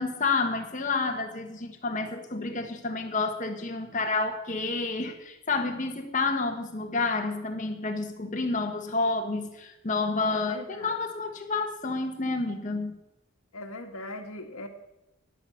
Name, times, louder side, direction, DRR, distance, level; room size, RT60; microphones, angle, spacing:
voice 1, 0.0-12.9, left 3 dB, 35° left, 3 dB, 1.4 m, -29 dB
voice 2, 10.2-10.9 13.5-14.7, left 2 dB, 90° left, 4 dB, 1.9 m, -40 dB
12.5 x 10.5 x 7.1 m, 0.89 s
head